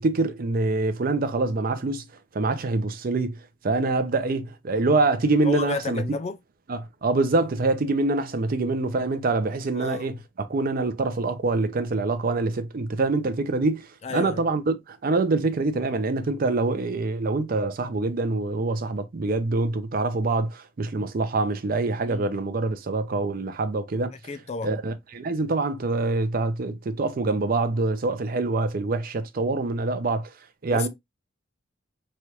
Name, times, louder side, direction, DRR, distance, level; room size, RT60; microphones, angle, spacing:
voice 1, 0.0-2.1 2.3-6.0 6.7-24.1 24.6-30.3 30.6-30.9, right 3 dB, 45° right, 0.5 m, -25 dB
voice 2, 5.4-6.4 9.7-10.1 14.0-14.4 22.0-22.3 24.2-24.7 30.7-30.9, left 4 dB, 35° left, 0.3 m, -31 dB
3.2 x 2.3 x 2.8 m
head